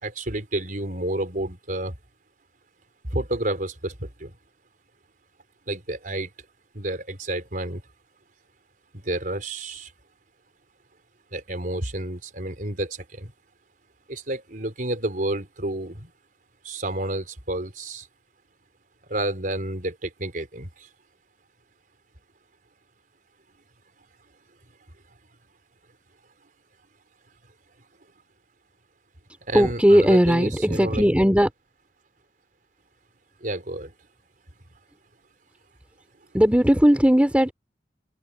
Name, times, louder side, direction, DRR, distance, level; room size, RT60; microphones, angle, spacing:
voice 1, 0.0-1.9 3.1-4.3 5.7-6.3 6.7-7.8 8.9-9.9 11.3-13.3 14.1-16.1 16.6-18.1 19.1-20.9 29.5-31.0 33.4-33.9, right 1 dB, 50° right, 4.4 m, -30 dB
voice 2, 29.5-31.5 36.3-37.5, equal, 10° right, 2.8 m, -18 dB
open air
head